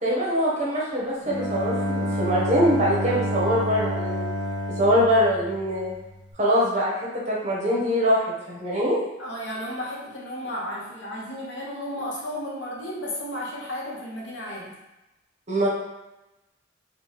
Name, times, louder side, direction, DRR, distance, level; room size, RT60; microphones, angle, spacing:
voice 1, 0.0-4.3 4.8-5.9 6.4-6.9 7.3-9.0 15.5-15.7, equal, 35° right, -5 dB, 0.7 m, -23 dB
Bowed string instrument, 1.2-6.1, equal, 5° right, 1.1 m, -29 dB
voice 2, 9.2-14.8, equal, 65° left, -4 dB, 0.8 m, -33 dB
3.2 x 2.1 x 2.8 m, 0.99 s
head